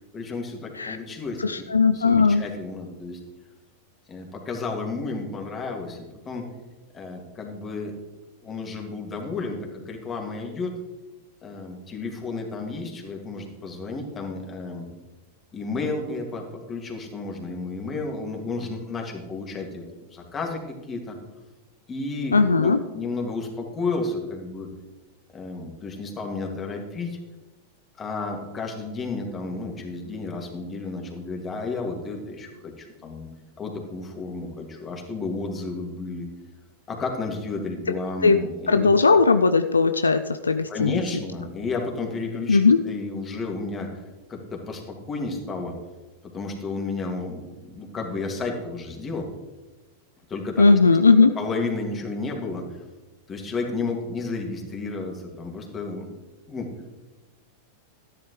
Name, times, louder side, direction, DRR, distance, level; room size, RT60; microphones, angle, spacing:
voice 1, 0.1-1.7 1.9-3.2 4.1-6.5 6.9-8.0 8.4-10.8 11.4-14.9 15.5-19.9 20.1-21.2 21.9-24.7 25.3-27.2 28.0-33.3 33.6-36.3 36.9-38.9 40.7-44.0 44.3-45.7 46.3-49.3 50.3-50.8 51.1-52.8 53.3-56.1 56.5-56.9, left 3 dB, 25° left, 1 dB, 2.3 m, -32 dB
voice 2, 1.4-2.4 22.3-22.8 37.9-38.0 38.2-38.4 38.7-41.0 42.5-42.8 50.6-51.3, left 4 dB, 85° left, 10 dB, 0.4 m, -18 dB
13.0 x 11.0 x 3.3 m, 1.1 s
hypercardioid pair, 95°, 0 cm